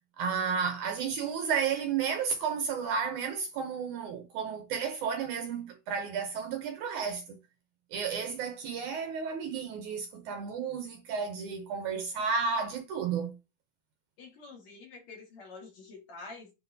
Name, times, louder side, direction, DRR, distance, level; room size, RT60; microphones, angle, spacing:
voice 1, 0.2-7.4 7.9-13.3, right 6 dB, 70° right, 2.0 m, -32 dB
voice 2, 14.2-16.5, left 3 dB, 55° left, 2.7 m, -47 dB
9.3 x 3.6 x 2.7 m
omnidirectional pair, 4.3 m